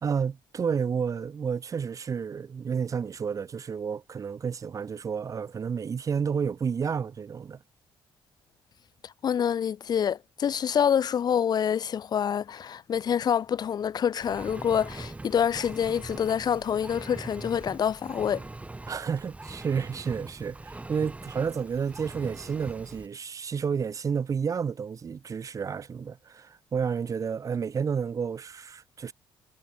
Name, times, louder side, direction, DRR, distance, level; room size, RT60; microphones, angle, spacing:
voice 1, 0.0-7.6 18.9-29.1, right 6 dB, 40° right, 1.4 m, -31 dB
voice 2, 9.0-18.4, left 8 dB, 50° left, 1.6 m, -27 dB
Engine, 14.2-23.1, right 2 dB, 15° right, 6.7 m, -42 dB
cardioid pair, 105°, 9 cm